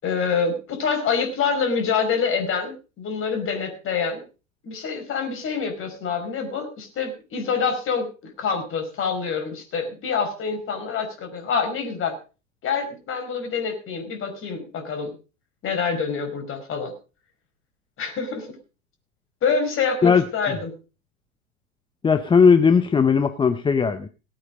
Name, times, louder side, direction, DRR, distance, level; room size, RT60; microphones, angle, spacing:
voice 1, 0.0-4.2 4.6-8.1 8.4-12.2 12.6-15.1 15.6-16.9 18.0-18.5 19.4-20.7, left 5 dB, 30° left, 6 dB, 5.0 m, -26 dB
voice 2, 22.0-24.1, left 6 dB, 10° left, 10 dB, 0.8 m, -17 dB
18.0 x 8.7 x 5.2 m, 0.34 s
hypercardioid pair, 95°, 41 cm